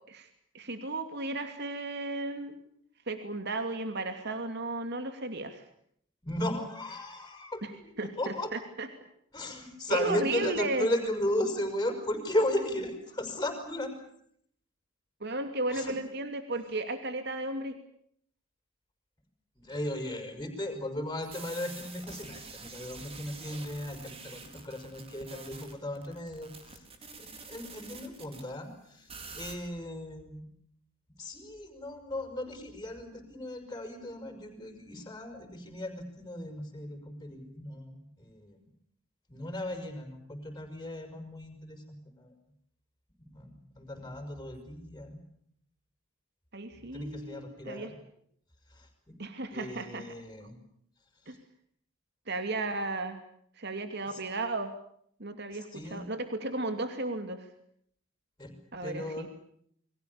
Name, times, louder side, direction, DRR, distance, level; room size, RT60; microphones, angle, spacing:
voice 1, 0.5-2.6 3.1-5.6 7.6-7.7 8.0-8.9 9.9-10.9 15.2-17.7 46.5-47.9 49.2-50.2 51.3-51.4 52.3-53.2 53.6-54.7 55.2-57.5 58.7-59.3, right 2 dB, 55° right, 7 dB, 2.7 m, -34 dB
voice 2, 6.2-8.5 9.3-13.9 15.7-15.9 16.6-16.7 19.6-29.1 29.3-30.5 31.2-38.7 39.3-42.3 43.2-45.2 46.7-47.9 48.7-49.1 49.5-50.6 51.3-51.4 54.1-54.2 55.5-56.0 58.4-58.5 58.8-59.3, left 1 dB, 15° left, 5 dB, 6.2 m, -36 dB
sound 1, 21.2-28.4 29.1-29.5, right 4 dB, 30° right, 4.4 m, -47 dB
29.5 x 24.0 x 7.1 m, 0.67 s
head